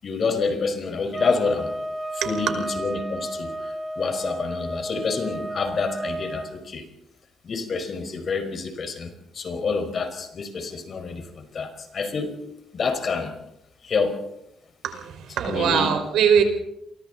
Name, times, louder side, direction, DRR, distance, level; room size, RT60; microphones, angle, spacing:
voice 1, 0.0-1.7 2.3-6.8 7.4-12.4 12.7-13.3 13.8-14.2 15.5-15.9, left 4 dB, 50° left, 6 dB, 5.3 m, -28 dB
sound 1, 1.1-6.5, right 1 dB, 15° right, 1.6 m, -32 dB
voice 2, 14.8-16.4, right 8 dB, 80° right, 6 dB, 5.1 m, -21 dB
29.5 x 23.5 x 4.2 m, 0.81 s
cardioid pair, 90°, 0 cm